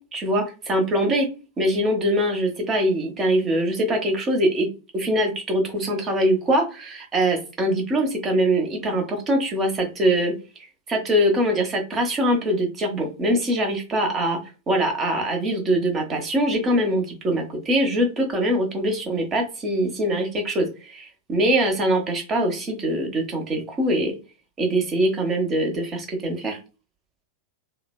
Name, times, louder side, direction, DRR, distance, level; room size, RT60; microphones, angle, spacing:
voice 1, 0.1-1.3 1.6-4.7 4.9-10.3 10.9-14.4 14.7-24.2 24.6-26.6, right 1 dB, 25° right, 3 dB, 0.9 m, -23 dB
3.1 x 2.1 x 2.2 m, 0.32 s
figure-of-eight pair, 90°, 0 cm